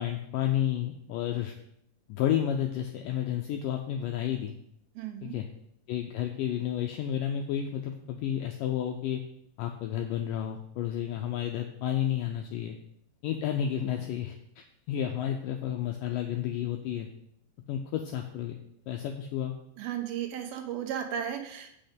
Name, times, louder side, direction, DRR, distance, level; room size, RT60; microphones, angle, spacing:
voice 1, 0.0-1.6 2.1-4.6 5.2-5.5 5.9-9.2 9.6-12.8 13.2-17.1 17.7-18.6 18.9-19.5, left 10 dB, 90° left, 3 dB, 1.9 m, -31 dB
voice 2, 5.0-5.4 19.8-21.7, right 9 dB, 75° right, 5 dB, 2.6 m, -35 dB
7.8 x 6.3 x 5.2 m, 0.73 s
omnidirectional pair, 4.6 m